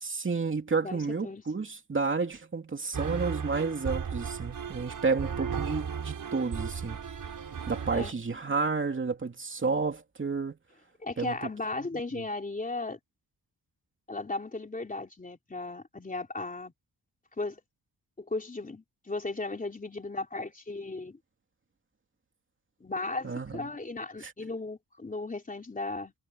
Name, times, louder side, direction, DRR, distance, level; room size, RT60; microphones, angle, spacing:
voice 1, 0.0-7.0 7.7-10.6 11.2-11.5 11.8-11.9 12.1-12.2 23.2-23.7 24.2-24.3, right 4 dB, 30° right, 2.8 m, -31 dB
voice 2, 0.8-1.4 7.9-8.1 11.0-13.0 14.1-16.7 17.4-17.6 18.2-21.2 22.8-26.1, left 3 dB, 20° left, 3.5 m, -36 dB
sound 1, 2.9-8.1, right 6 dB, 55° right, 6.8 m, -35 dB
wide cardioid pair, 140°, 39 cm